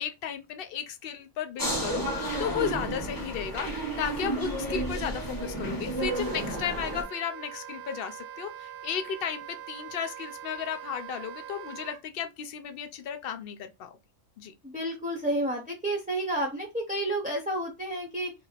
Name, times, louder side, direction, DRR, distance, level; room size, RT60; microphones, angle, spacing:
voice 1, 0.0-14.0 14.4-14.5, left 8 dB, 80° left, 0.5 m, -34 dB
sound 1, 1.6-7.0, right 1 dB, 15° left, 1.0 m, -32 dB
Wind instrument woodwind instrument, 6.0-12.0, right 10 dB, 85° right, 1.1 m, -43 dB
voice 2, 14.6-18.3, right 1 dB, 10° right, 0.5 m, -30 dB
2.9 x 2.7 x 4.0 m
omnidirectional pair, 1.5 m